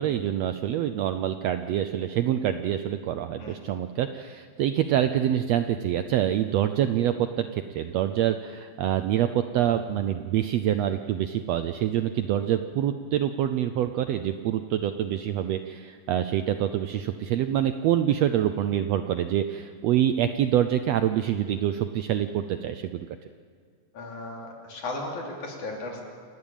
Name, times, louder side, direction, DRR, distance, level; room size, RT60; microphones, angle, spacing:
voice 1, 0.0-23.1, right 11 dB, 75° right, 9 dB, 1.5 m, -26 dB
voice 2, 3.4-3.7 23.9-26.0, left 2 dB, 65° left, -1 dB, 4.8 m, -36 dB
28.5 x 12.5 x 9.0 m, 2.1 s
omnidirectional pair, 3.6 m